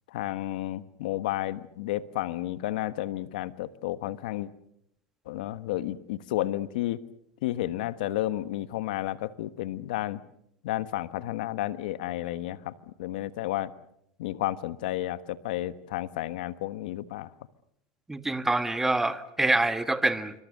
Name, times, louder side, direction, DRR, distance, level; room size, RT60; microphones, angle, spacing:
voice 1, 0.1-4.5 5.3-7.0 7.4-10.2 10.6-13.7 14.2-17.3, left 14 dB, 80° left, 14 dB, 1.2 m, -32 dB
voice 2, 18.1-20.3, right 2 dB, 10° right, 11 dB, 1.5 m, -26 dB
26.0 x 25.0 x 6.6 m, 0.74 s
supercardioid pair, 130°, 5 cm